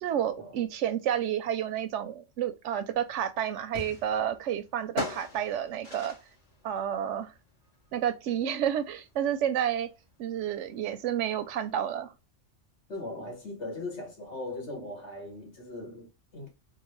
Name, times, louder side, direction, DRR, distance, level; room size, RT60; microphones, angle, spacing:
voice 1, 0.0-6.2 6.6-7.3 7.9-9.9 10.2-12.1, right 9 dB, 80° right, 0.9 m, -30 dB
sound 1, 2.8-11.7, left 2 dB, 40° left, 1.5 m, -43 dB
voice 2, 12.9-16.5, left 2 dB, 65° left, 1.7 m, -39 dB
3.8 x 2.2 x 3.1 m
omnidirectional pair, 1.2 m